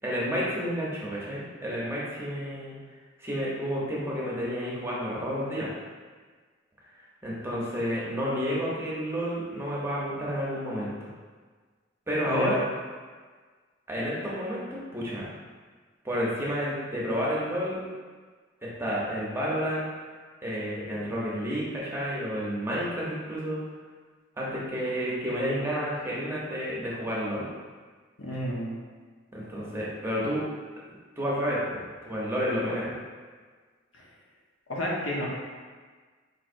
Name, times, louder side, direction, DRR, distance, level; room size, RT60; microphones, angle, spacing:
voice 1, 0.0-2.8 3.2-5.7 7.2-11.1 12.1-12.6 13.9-15.3 16.0-17.8 18.6-19.8 20.4-23.6 24.4-27.5 29.3-30.5 31.2-32.9, equal, 15° right, -6 dB, 0.8 m, -30 dB
voice 2, 12.3-12.6 28.2-28.7 33.9-34.0 34.7-35.3, equal, 80° left, -4 dB, 0.9 m, -31 dB
4.2 x 3.1 x 2.6 m, 1.5 s
head